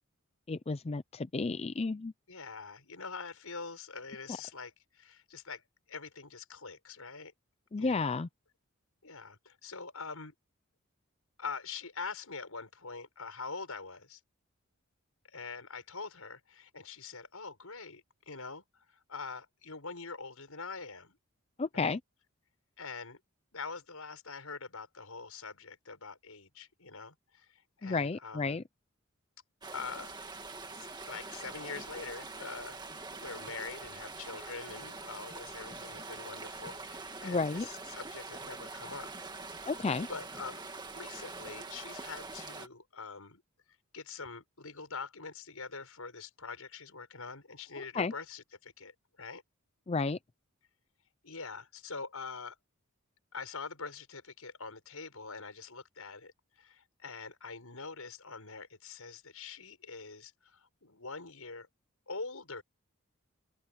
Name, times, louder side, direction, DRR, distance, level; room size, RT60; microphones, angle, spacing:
voice 1, 0.5-2.1 7.7-8.3 21.6-22.0 27.8-28.6 37.2-37.7 39.7-40.1 47.9-48.1 49.9-50.2, left 4 dB, 30° left, 0.4 m, -32 dB
voice 2, 2.3-5.6 5.9-7.3 7.8-8.2 9.0-10.3 11.4-14.2 15.3-18.6 18.9-21.2 21.7-22.0 22.8-23.2 23.5-28.6 29.7-30.1 30.7-39.1 39.4-39.6 40.1-40.6 40.9-43.4 43.9-49.4 51.2-52.6 53.3-61.7 62.1-62.6, left 4 dB, 85° left, 6.1 m, -44 dB
sound 1, 29.6-42.7, right 3 dB, 20° right, 1.9 m, -44 dB
open air
head